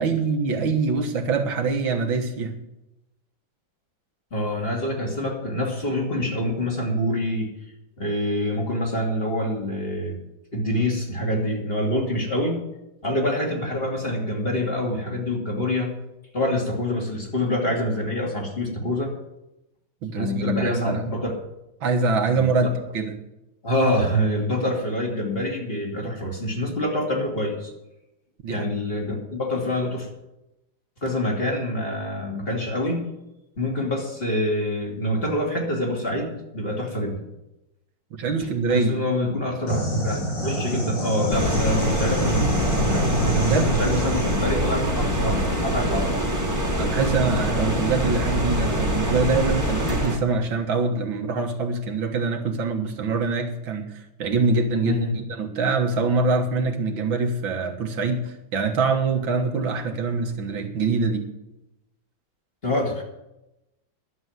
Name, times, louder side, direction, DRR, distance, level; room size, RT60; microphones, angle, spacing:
voice 1, 0.0-2.5 20.0-21.1 21.8-23.1 28.4-28.7 38.1-39.0 43.3-43.7 46.8-61.3, right 4 dB, 80° right, 2 dB, 2.2 m, -24 dB
voice 2, 4.3-7.5 8.0-10.2 10.5-12.6 13.0-15.9 16.3-19.1 20.1-21.3 22.3-22.5 23.6-27.7 28.5-30.1 31.0-33.0 33.6-37.2 38.4-46.2 54.8-55.2 62.6-63.0, left 1 dB, 30° left, -1 dB, 2.8 m, -26 dB
sound 1, 39.7-44.5, equal, 60° left, 5.8 m, -26 dB
sound 2, 41.3-50.2, equal, 10° right, 1.6 m, -24 dB
11.5 x 7.1 x 9.4 m, 0.92 s
omnidirectional pair, 2.1 m